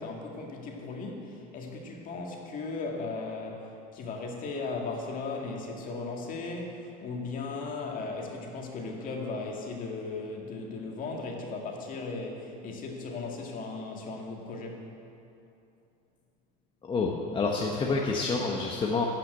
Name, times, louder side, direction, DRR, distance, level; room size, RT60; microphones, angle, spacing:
voice 1, 0.0-14.8, left 3 dB, 45° left, 1 dB, 2.0 m, -37 dB
voice 2, 16.8-19.1, left 4 dB, 25° left, -1 dB, 1.0 m, -28 dB
12.5 x 5.9 x 7.9 m, 2.7 s
supercardioid pair, 115°, 20 cm